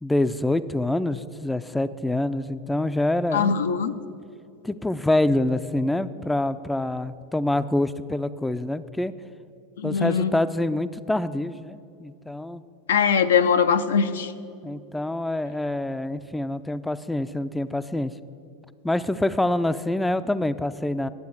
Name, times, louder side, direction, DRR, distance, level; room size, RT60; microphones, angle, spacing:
voice 1, 0.0-3.6 4.6-9.1 9.8-12.6 14.6-18.1 18.8-21.1, left 1 dB, 5° left, 13 dB, 0.4 m, -26 dB
voice 2, 3.3-3.9 9.8-10.4 12.9-14.3, left 6 dB, 85° left, 10 dB, 0.5 m, -21 dB
10.5 x 7.6 x 7.2 m, 2.5 s
hypercardioid pair, 105°, 0 cm